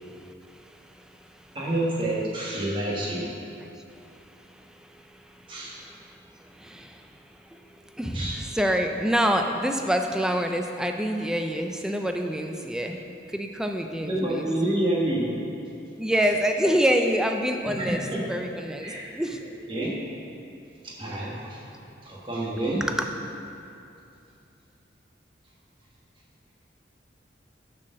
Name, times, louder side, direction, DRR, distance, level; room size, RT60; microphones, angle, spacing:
voice 1, 0.5-0.8 1.5-1.6 3.6-3.7 4.0-4.9 5.3-6.0 6.4-7.1 7.4-7.6 7.8-13.0 13.3-14.5 16.0-18.0 18.3-19.4, equal, 5° right, 4 dB, 0.4 m, -27 dB
voice 2, 1.5-3.3 5.5-5.8 8.1-8.5 14.0-15.2 17.6-17.8 18.1-18.2 18.8-19.0 19.7-19.9 20.8-21.6 22.0-22.8, right 1 dB, 30° right, -5 dB, 1.4 m, -28 dB
7.4 x 4.4 x 6.2 m, 2.7 s
head